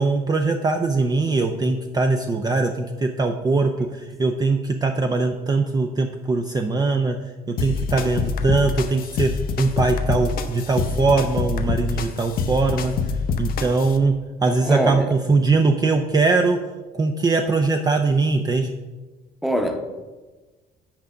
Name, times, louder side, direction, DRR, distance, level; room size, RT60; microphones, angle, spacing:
voice 1, 0.0-7.2 7.5-9.3 9.6-12.9 13.4-16.6 16.9-18.8, right 3 dB, 25° right, 5 dB, 0.5 m, -21 dB
sound 1, 7.6-14.0, left 4 dB, 60° left, 0.7 m, -26 dB
voice 2, 14.6-15.1 19.4-19.9, equal, ahead, 5 dB, 0.9 m, -23 dB
6.0 x 5.0 x 6.6 m, 1.2 s
cardioid pair, 110°, 17 cm